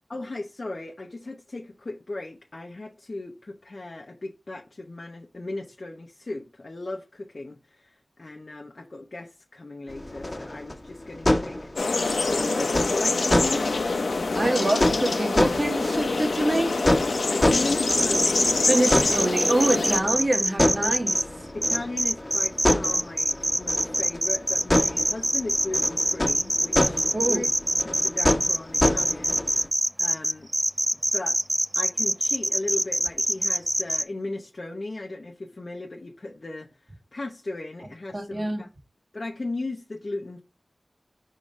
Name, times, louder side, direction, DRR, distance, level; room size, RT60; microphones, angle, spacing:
voice 1, 0.1-11.7 12.1-13.7 17.3-18.6 21.5-27.5 27.8-29.7 30.0-30.5 31.1-31.4 31.7-36.7 37.1-38.7 39.1-40.4, left 2 dB, 55° left, 0.8 m, -36 dB
sound 1, 9.9-29.7, left 1 dB, 30° left, 1.5 m, -28 dB
sound 2, 11.8-20.0, left 3 dB, 85° left, 0.8 m, -25 dB
voice 2, 14.3-16.7 18.7-21.2 27.1-27.4 38.1-38.6, right 1 dB, 45° right, 1.6 m, -25 dB
sound 3, 17.9-21.2 21.6-34.0, right 1 dB, 20° right, 0.4 m, -24 dB
4.9 x 3.7 x 5.4 m
wide cardioid pair, 55°, 0 cm